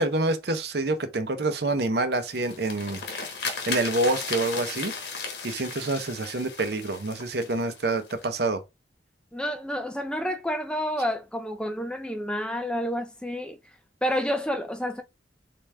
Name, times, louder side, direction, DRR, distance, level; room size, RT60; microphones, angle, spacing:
voice 1, 0.0-3.0 3.7-4.9 5.4-8.6, right 2 dB, 60° right, 0.7 m, -27 dB
sound 1, 2.2-8.3, left 4 dB, 65° left, 1.2 m, -35 dB
voice 2, 9.3-13.6 14.0-15.0, equal, 5° left, 0.3 m, -29 dB
3.8 x 3.5 x 3.3 m
head